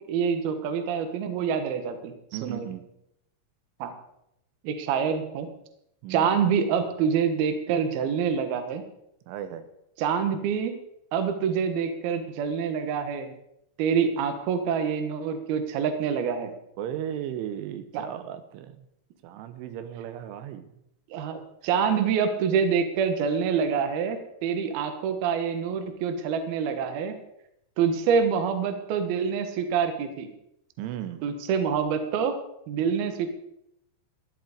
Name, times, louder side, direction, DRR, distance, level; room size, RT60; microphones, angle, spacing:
voice 1, 0.1-2.1 2.4-2.7 3.8-3.9 4.6-5.5 6.1-8.8 10.0-10.7 11.1-13.3 13.8-16.5 17.9-18.1 21.1-27.1 27.8-30.3 31.2-32.3 32.7-33.3, right 6 dB, 65° right, 8 dB, 2.8 m, -26 dB
voice 2, 2.3-2.9 6.0-6.4 9.3-9.7 16.8-18.9 19.2-20.7 30.8-31.2, right 10 dB, 85° right, 10 dB, 3.4 m, -36 dB
15.5 x 10.5 x 5.0 m, 0.78 s
omnidirectional pair, 5.4 m